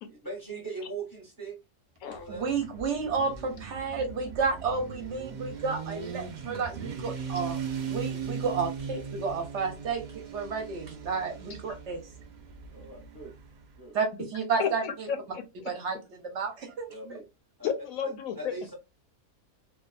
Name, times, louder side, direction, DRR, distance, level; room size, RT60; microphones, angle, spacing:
voice 1, 0.1-1.6 2.0-2.4 12.7-13.3 13.8-14.0 16.9-17.2 17.6-17.7 18.4-18.7, right 3 dB, 15° right, -1 dB, 0.8 m, -40 dB
Motorcycle, 2.1-13.8, right 6 dB, 90° right, 0.4 m, -39 dB
voice 2, 2.3-7.6 7.9-10.0 10.3-12.1 13.9-14.1 14.3-15.1 15.7-16.9, right 5 dB, 65° right, 4 dB, 0.8 m, -31 dB
voice 3, 14.6-15.7 17.6-18.5, left 7 dB, 80° left, 7 dB, 1.0 m, -32 dB
2.7 x 2.3 x 2.3 m, 0.26 s
omnidirectional pair, 1.5 m